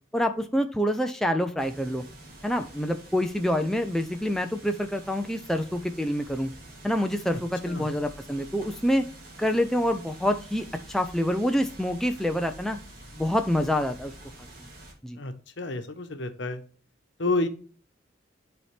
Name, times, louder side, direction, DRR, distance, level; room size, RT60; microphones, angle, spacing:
voice 1, 0.1-2.0 2.4-6.5 6.8-9.0 9.4-12.8 13.1-14.1 15.0-15.2, equal, ahead, 5 dB, 0.5 m, -26 dB
sound 1, 1.6-14.9, right 1 dB, 45° right, 2.8 m, -47 dB
voice 2, 15.1-16.6 17.2-17.5, left 2 dB, 65° left, 8 dB, 1.0 m, -29 dB
11.0 x 4.3 x 3.3 m, 0.40 s
head